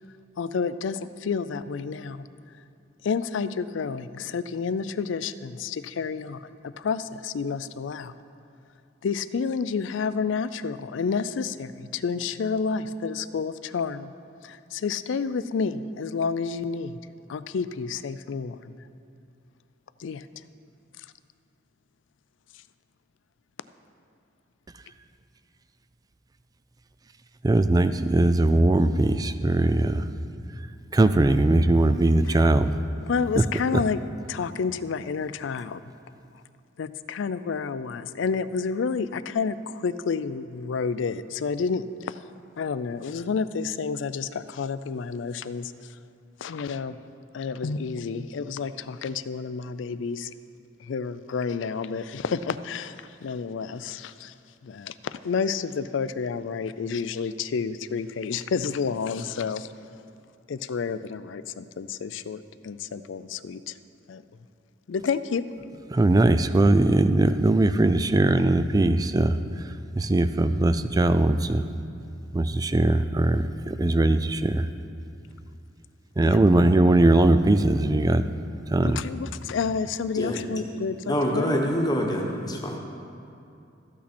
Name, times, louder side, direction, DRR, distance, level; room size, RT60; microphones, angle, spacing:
voice 1, 0.4-2.3 3.0-8.1 9.0-14.1 14.4-17.0 17.3-18.7 20.0-20.3 21.0-21.1 32.2-32.5 33.1-34.0 34.3-35.8 36.8-42.2 42.6-46.0 46.4-47.0 47.3-50.3 50.8-54.3 54.6-59.7 60.5-63.8 64.1-64.2 64.9-65.4 76.2-76.4 78.8-81.6, left 5 dB, 75° left, 14 dB, 0.4 m, -30 dB
voice 2, 27.4-30.0 30.9-32.7 65.9-69.4 70.0-71.6 72.3-74.7 76.2-78.2 78.7-79.0, right 2 dB, 20° right, 12 dB, 0.3 m, -20 dB
voice 3, 81.1-82.8, equal, 20° left, 1 dB, 1.2 m, -26 dB
14.0 x 8.5 x 4.3 m, 2.7 s
head